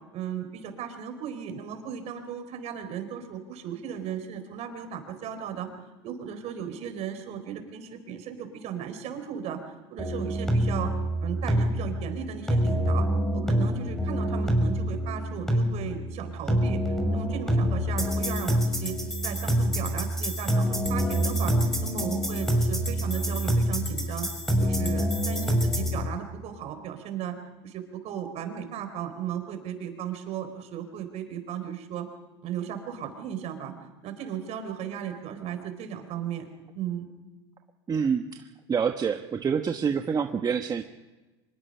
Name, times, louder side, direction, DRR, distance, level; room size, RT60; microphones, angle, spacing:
voice 1, 0.1-5.7 6.0-9.6 9.9-10.9 11.2-13.1 13.3-16.8 17.1-18.9 19.2-21.5 21.8-24.3 24.6-27.4 27.6-32.1 32.4-33.7 34.0-36.5 36.7-37.1, right 8 dB, 50° right, 7 dB, 4.6 m, -36 dB
sound 1, 10.0-26.0, equal, 5° left, 6.0 m, -26 dB
voice 2, 37.9-40.8, right 6 dB, 30° right, 6 dB, 1.3 m, -27 dB
25.5 x 21.5 x 5.7 m, 1.2 s
hypercardioid pair, 90°, 14 cm